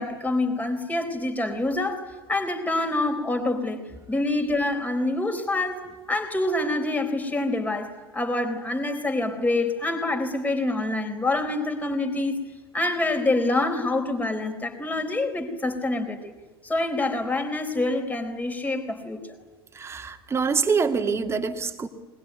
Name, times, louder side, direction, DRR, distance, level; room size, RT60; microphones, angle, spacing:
voice 1, 0.0-12.4 12.7-16.3 16.6-19.2, left 2 dB, 10° left, 6 dB, 4.2 m, -26 dB
voice 2, 19.7-21.9, right 5 dB, 20° right, 6 dB, 2.3 m, -25 dB
22.5 x 21.0 x 9.4 m, 1.2 s
figure-of-eight pair, 80°, 13 cm